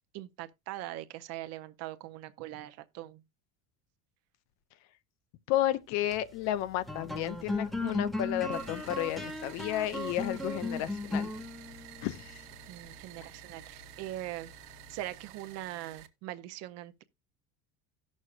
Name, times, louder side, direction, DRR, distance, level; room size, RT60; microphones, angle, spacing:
voice 1, 0.1-3.2 12.7-14.5 14.9-17.0, right 15 dB, 50° right, 0.7 m, -41 dB
voice 2, 5.5-11.3 12.0-12.4, left 13 dB, 50° left, 0.6 m, -32 dB
sound 1, 5.9-15.5, left 2 dB, ahead, 0.6 m, -38 dB
sound 2, 8.5-16.1, right 13 dB, 75° right, 1.1 m, -51 dB
17.5 x 6.3 x 2.4 m
cardioid pair, 165°, 34 cm